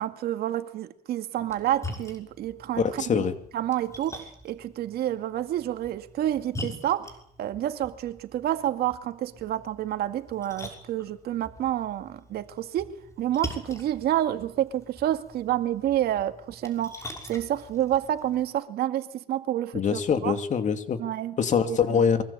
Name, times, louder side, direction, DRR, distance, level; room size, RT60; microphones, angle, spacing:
voice 1, 0.0-3.2 3.5-7.1 7.4-20.4 21.0-21.4 21.6-22.0, right 12 dB, 70° right, 2.2 m, -29 dB
Splash splatter, 1.4-18.5, left 1 dB, 15° left, 6.2 m, -44 dB
voice 2, 2.8-3.3 19.7-21.0 21.4-22.2, left 7 dB, 45° left, 2.6 m, -24 dB
24.0 x 22.5 x 8.7 m
cardioid pair, 110°, 17 cm